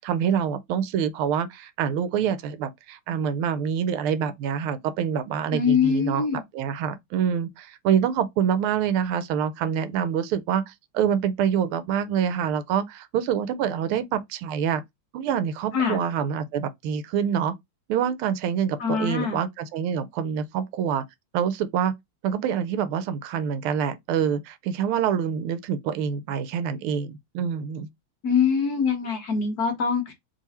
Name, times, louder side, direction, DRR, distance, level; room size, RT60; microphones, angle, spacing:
voice 1, 0.0-14.8 15.1-17.5 17.9-21.0 21.3-21.9 22.2-27.9, right 8 dB, 85° right, 1.5 m, -26 dB
voice 2, 5.5-6.4 15.7-16.0 18.8-19.4 28.2-30.1, left 6 dB, 50° left, 1.4 m, -23 dB
3.8 x 3.3 x 4.1 m
omnidirectional pair, 2.3 m